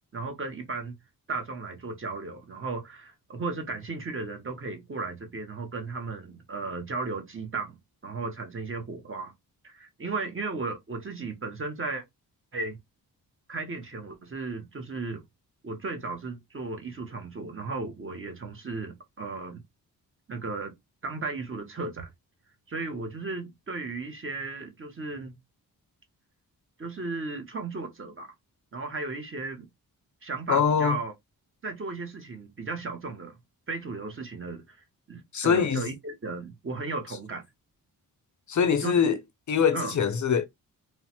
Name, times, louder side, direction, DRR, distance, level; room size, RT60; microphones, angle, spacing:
voice 1, 0.1-0.9 1.3-9.3 9.6-12.0 12.5-12.8 13.5-15.2 15.6-19.6 20.3-20.7 21.0-22.1 22.7-25.3 26.8-28.3 28.7-29.7 30.2-31.1 31.6-33.4 33.7-37.4 38.8-39.0 39.7-39.9, right 3 dB, 35° right, 0.8 m, -35 dB
voice 2, 30.5-31.0 35.3-35.9 38.5-39.2 39.5-40.4, left 7 dB, 50° left, 0.5 m, -23 dB
3.0 x 2.0 x 2.8 m
wide cardioid pair, 130°, 37 cm